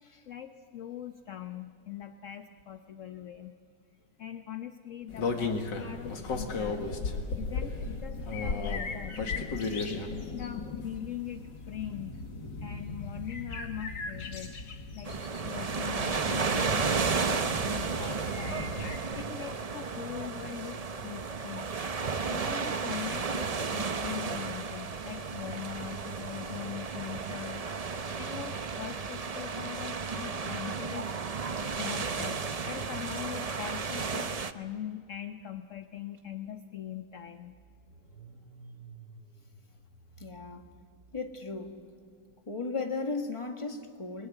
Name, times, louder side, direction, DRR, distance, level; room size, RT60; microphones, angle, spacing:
voice 1, 0.3-3.6 4.2-6.9 7.4-9.5 10.3-12.2 12.6-14.6 14.9-15.1 15.5-21.7 22.3-27.6 28.2-31.1 31.8-32.4 32.7-37.6, left 10 dB, 55° left, 8 dB, 1.1 m, -42 dB
sound 1, 5.1-19.0, left 4 dB, 90° left, 2.6 m, -36 dB
sound 2, 15.1-34.5, right 5 dB, 50° right, 0.4 m, -33 dB
Car / Engine starting, 36.2-36.3 36.6-41.8, right 4 dB, 75° right, 3.0 m, -54 dB
voice 2, 40.2-40.7 41.1-41.8 42.5-44.3, left 3 dB, 20° left, 4 dB, 1.8 m, -35 dB
28.5 x 20.0 x 9.9 m, 2.2 s
omnidirectional pair, 1.9 m